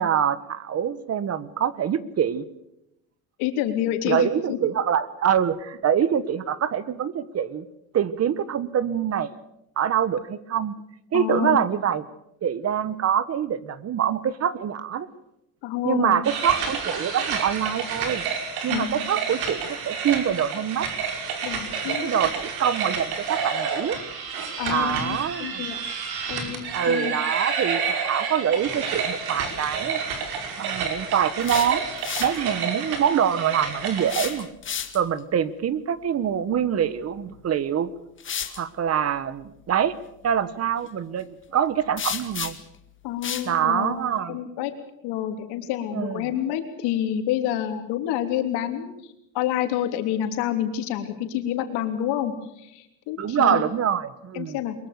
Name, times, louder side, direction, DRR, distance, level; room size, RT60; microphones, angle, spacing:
voice 1, 0.0-2.4 4.0-7.6 7.9-9.4 9.8-10.7 11.1-12.0 12.4-15.1 15.8-18.2 18.6-20.9 21.9-24.0 24.7-25.6 26.7-30.0 30.6-31.9 32.2-34.5 34.9-37.9 38.6-40.0 40.2-42.5 43.4-44.4 45.9-46.3 53.2-54.5, right 9 dB, 40° right, 16 dB, 1.3 m, -25 dB
voice 2, 3.4-4.6 11.1-11.6 15.6-16.2 18.7-19.0 21.4-22.2 24.6-25.8 26.3-27.2 43.0-44.7 45.0-48.9 49.3-53.6 54.3-54.7, left 11 dB, 90° left, 6 dB, 3.4 m, -28 dB
sound 1, 16.2-34.3, right 6 dB, 65° right, 5.5 m, -29 dB
sound 2, 31.2-32.4 34.0-35.2 37.3-37.4 38.2-38.6 42.0-42.8 43.2-43.5, left 8 dB, 30° left, 1.9 m, -32 dB
23.0 x 22.0 x 6.8 m, 0.81 s
cardioid pair, 140°, 39 cm